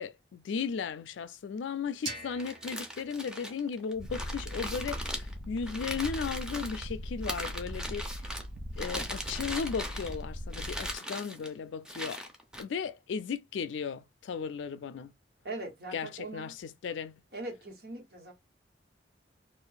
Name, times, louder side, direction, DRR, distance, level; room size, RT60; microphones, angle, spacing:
voice 1, 0.0-8.2 8.8-12.2 12.6-15.1 15.9-17.2, left 6 dB, 90° left, 0.4 m, -36 dB
sound 1, 2.1-4.9, right 2 dB, 30° right, 1.0 m, -45 dB
sound 2, 2.3-6.8 7.2-8.5 8.8-10.2 10.5-11.5 11.9-12.6, equal, 5° right, 0.5 m, -39 dB
Purr, 3.9-10.9, equal, 85° right, 0.6 m, -40 dB
voice 2, 15.4-16.5 17.3-18.3, right 2 dB, 55° right, 1.2 m, -41 dB
2.6 x 2.4 x 3.9 m
head